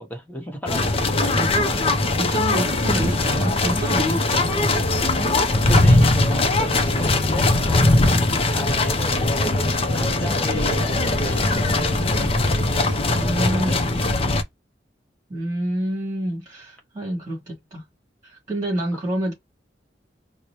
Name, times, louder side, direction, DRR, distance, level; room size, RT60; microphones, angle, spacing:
voice 1, 0.0-1.3 5.7-7.8 8.6-9.5 9.9-14.3, equal, 10° left, 1.0 m, -35 dB
sound 1, 0.7-14.4, left 2 dB, 30° left, 0.5 m, -20 dB
voice 2, 1.2-1.7 2.2-4.6 8.0-8.4 13.1-13.9 15.3-17.8 18.2-19.3, right 1 dB, 20° right, 2.3 m, -28 dB
4.6 x 2.1 x 2.9 m
head